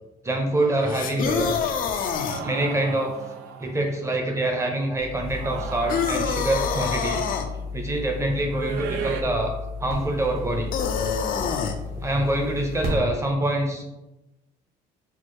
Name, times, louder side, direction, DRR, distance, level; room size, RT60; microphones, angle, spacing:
voice 1, 0.2-1.6 2.4-3.1 3.6-7.3 7.7-9.5 9.8-10.7 11.9-13.8, right 1 dB, 15° right, 3 dB, 0.8 m, -25 dB
sound 1, 0.9-2.4 5.9-7.5 10.7-11.8, left 6 dB, 55° left, 0.5 m, -26 dB
sound 2, 2.3-3.9 5.2-7.0 8.5-9.2, right 6 dB, 80° right, 0.5 m, -35 dB
sound 3, 4.9-13.0, left 3 dB, 60° right, 1.4 m, -34 dB
4.6 x 2.0 x 4.5 m, 0.97 s
cardioid pair, 110°, 17 cm